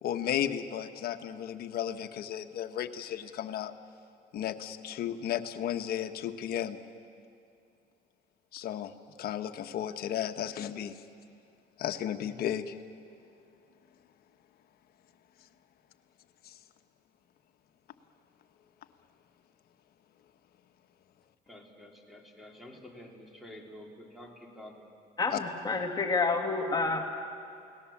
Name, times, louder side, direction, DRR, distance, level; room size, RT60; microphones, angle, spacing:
voice 1, 0.0-3.7 4.3-6.8 8.5-8.9 9.2-11.0 11.8-12.8 16.4-16.6 25.3-25.4, left 10 dB, 65° left, 8 dB, 1.2 m, -34 dB
voice 2, 21.5-24.9, left 1 dB, ahead, 0 dB, 3.6 m, -49 dB
voice 3, 25.2-27.1, left 3 dB, 25° left, 2 dB, 2.2 m, -29 dB
29.5 x 18.5 x 7.3 m, 2.4 s
cardioid pair, 110°, 17 cm